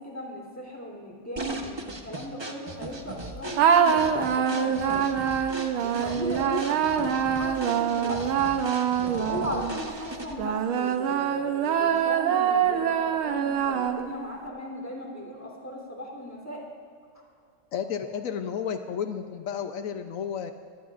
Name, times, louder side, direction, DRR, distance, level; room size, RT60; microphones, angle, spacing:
voice 1, 0.0-5.1 5.8-8.2 9.0-16.6 18.0-18.2, equal, 5° left, -2 dB, 3.3 m, -37 dB
sound 1, 1.4-10.5, right 1 dB, 25° right, 0.5 m, -38 dB
sound 2, 3.6-9.8 10.4-14.3, right 8 dB, 80° right, 1.7 m, -25 dB
voice 2, 17.7-20.5, left 7 dB, 85° left, 7 dB, 0.7 m, -32 dB
24.0 x 18.5 x 2.5 m, 2.3 s
omnidirectional pair, 2.2 m